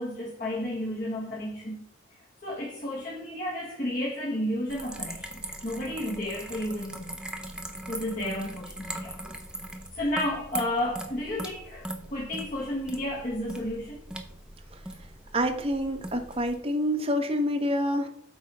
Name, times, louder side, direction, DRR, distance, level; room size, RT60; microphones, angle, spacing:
voice 1, 0.0-1.8 2.4-7.2 7.9-9.2 9.9-14.0, left 1 dB, 45° left, 1.3 m, -32 dB
sound 1, 4.7-16.6, right 1 dB, 5° right, 0.6 m, -40 dB
voice 2, 15.3-18.1, equal, 30° right, 1.0 m, -27 dB
8.0 x 3.5 x 5.4 m
head